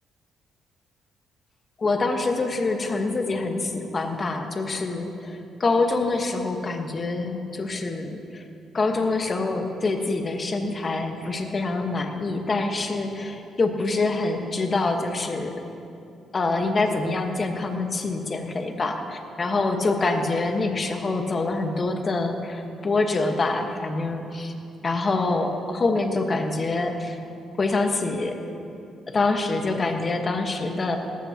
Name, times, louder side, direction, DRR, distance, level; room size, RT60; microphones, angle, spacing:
voice 1, 1.8-8.4 8.7-15.6 16.3-24.5 24.8-27.2 27.6-28.4 29.1-31.0, left 3 dB, 35° left, 4 dB, 1.3 m, -25 dB
18.5 x 15.0 x 2.9 m, 2.6 s
cardioid pair, 90°, 0 cm